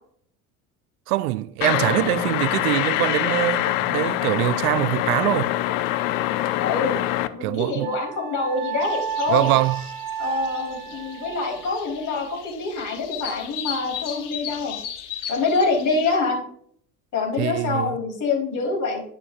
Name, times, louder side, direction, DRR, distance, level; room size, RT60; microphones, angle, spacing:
voice 1, 1.1-5.5 7.4-7.9 9.3-9.8 17.4-18.0, right 16 dB, 75° right, 0.5 m, -23 dB
sound 1, 1.6-7.3, left 15 dB, 60° left, 0.7 m, -24 dB
voice 2, 6.6-7.1 7.3-9.5 10.2-14.7 15.3-16.4 17.1-19.0, left 4 dB, 40° left, 3.8 m, -25 dB
Wind instrument woodwind instrument, 7.8-12.2, right 9 dB, 45° right, 1.7 m, -32 dB
sound 2, 8.8-16.2, left 9 dB, 80° left, 1.3 m, -37 dB
11.0 x 6.9 x 2.4 m
hypercardioid pair, 70°, 45 cm